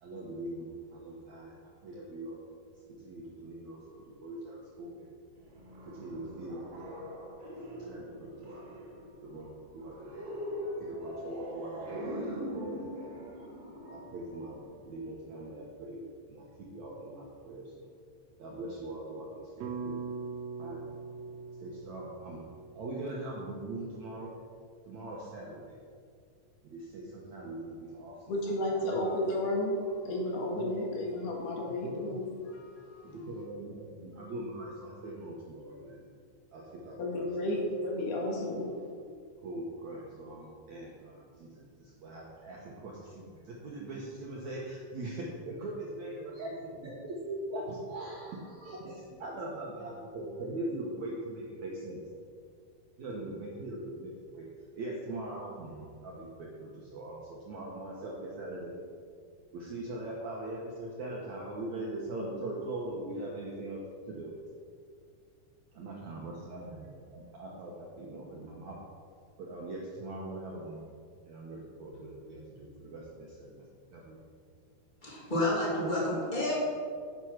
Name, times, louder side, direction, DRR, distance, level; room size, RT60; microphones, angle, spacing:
voice 1, 0.0-2.4 2.9-5.1 5.8-7.5 7.8-8.7 9.2-13.4 13.9-16.0 16.3-17.9 18.4-20.0 20.6-21.0 21.6-22.5 22.7-24.4 24.9-25.8 26.6-29.0 30.5-30.7 31.0-31.1 31.6-32.2 33.1-36.1 36.5-37.5 39.4-52.0 53.0-54.5 54.8-58.8 59.5-64.3 65.7-68.8 69.4-70.9 71.2-74.2, right 1 dB, 65° right, -3 dB, 1.9 m, -41 dB
sound 1, 5.4-15.1, equal, 45° right, 2.2 m, -42 dB
sound 2, 19.6-23.9, right 4 dB, 80° right, 2.7 m, -42 dB
voice 2, 28.3-33.2 37.0-38.7, left 1 dB, 75° left, -1 dB, 3.7 m, -33 dB
voice 3, 75.0-76.5, left 1 dB, 15° left, -6 dB, 2.7 m, -30 dB
9.7 x 8.4 x 6.0 m, 2.2 s
omnidirectional pair, 4.7 m